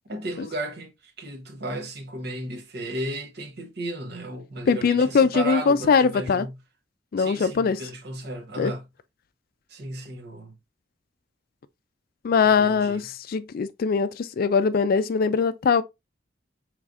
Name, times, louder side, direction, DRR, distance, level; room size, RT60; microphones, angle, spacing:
voice 1, 0.1-6.6 7.2-8.8 9.7-10.5 12.4-13.1, right 1 dB, 60° right, 0.9 m, -34 dB
voice 2, 4.7-6.5 7.1-7.8 8.6-8.7 12.2-15.8, left 5 dB, 55° left, 0.4 m, -21 dB
4.9 x 3.2 x 2.4 m
head